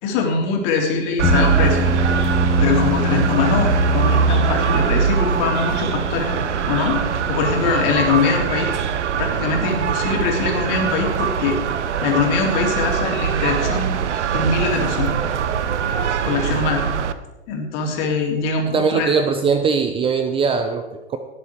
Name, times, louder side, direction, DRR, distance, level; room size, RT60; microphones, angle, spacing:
voice 1, 0.0-2.0 2.6-6.3 6.7-7.0 7.3-8.7 9.2-11.6 12.0-13.9 14.3-15.1 16.2-16.8 17.5-19.2, left 4 dB, 40° left, 2 dB, 3.2 m, -22 dB
sound 1, 1.2-13.7, left 2 dB, 5° left, 2.6 m, -28 dB
sound 2, 1.2-17.1, right 6 dB, 85° right, 1.0 m, -22 dB
voice 2, 18.7-21.2, right 5 dB, 15° right, 7 dB, 0.7 m, -20 dB
18.5 x 7.4 x 4.7 m, 1.1 s
hypercardioid pair, 125°, 34 cm